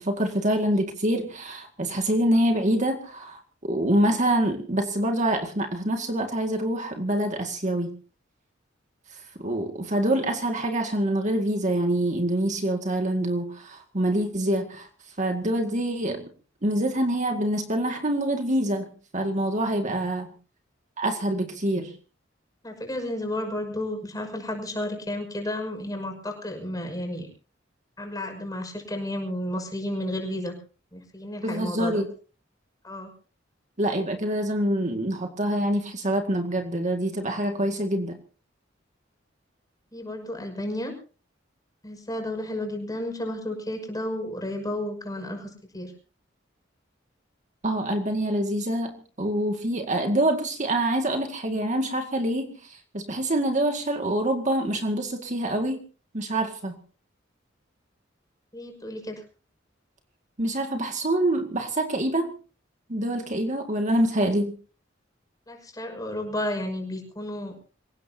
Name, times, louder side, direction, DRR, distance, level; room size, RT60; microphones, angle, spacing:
voice 1, 0.0-7.9 9.4-14.9 15.2-16.3 16.6-20.3 21.0-21.9 31.4-32.1 33.8-38.1 47.6-55.8 56.1-56.8 60.4-62.3 62.9-64.6, right 1 dB, 40° right, 4 dB, 2.1 m, -26 dB
voice 2, 22.6-27.3 28.0-30.6 30.9-32.0 32.8-33.1 39.9-40.9 41.8-45.5 45.7-45.9 58.5-59.2 65.5-67.5, left 1 dB, 20° left, 3 dB, 6.1 m, -32 dB
27.0 x 17.0 x 2.8 m, 0.38 s
head